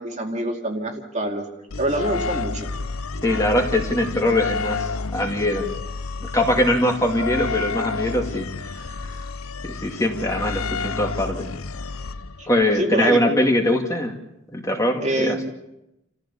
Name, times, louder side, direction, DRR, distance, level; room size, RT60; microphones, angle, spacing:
voice 1, 0.0-1.5 1.8-2.7 12.4-12.5 12.7-13.4 15.0-15.5, right 1 dB, 35° right, 2 dB, 2.5 m, -26 dB
sound 1, 1.7-12.6, left 4 dB, 80° left, 0.8 m, -30 dB
voice 2, 3.2-5.7 6.2-9.1 9.6-11.5 12.5-14.2 14.5-15.4, left 1 dB, 15° left, 1 dB, 2.4 m, -22 dB
29.0 x 15.0 x 7.1 m, 0.88 s
head